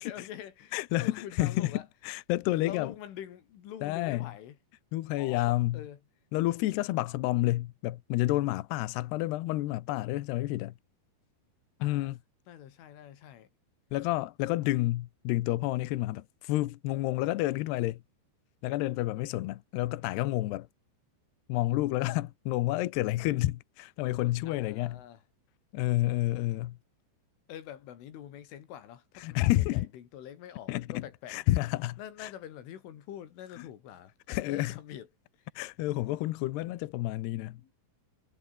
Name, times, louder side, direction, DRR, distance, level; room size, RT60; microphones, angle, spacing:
voice 1, 0.0-1.9 2.6-4.6 5.2-6.0 11.8-12.1 12.5-13.5 24.5-25.2 27.5-31.4 32.0-35.1 35.4-35.5 37.4-37.7, left 10 dB, 90° left, 5.1 m, -45 dB
voice 2, 0.7-1.7 2.0-2.9 3.8-4.3 4.9-5.8 6.3-10.8 11.8-12.2 13.9-18.0 18.6-20.7 21.5-25.0 25.7-26.8 29.2-29.9 30.7-31.0 31.3-32.3 34.3-34.7 35.6-37.6, left 17 dB, 75° left, 2.7 m, -29 dB
omnidirectional pair, 5.5 m